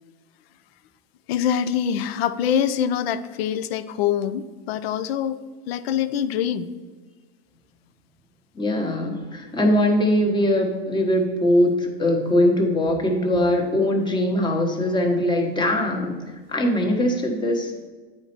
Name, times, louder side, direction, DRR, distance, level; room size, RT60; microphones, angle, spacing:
voice 1, 1.3-6.7, left 9 dB, 80° left, 13 dB, 0.6 m, -24 dB
voice 2, 8.6-16.2 16.5-17.7, left 1 dB, 15° left, 2 dB, 1.1 m, -21 dB
8.8 x 4.3 x 4.4 m, 1.4 s
supercardioid pair, 140°, 30 cm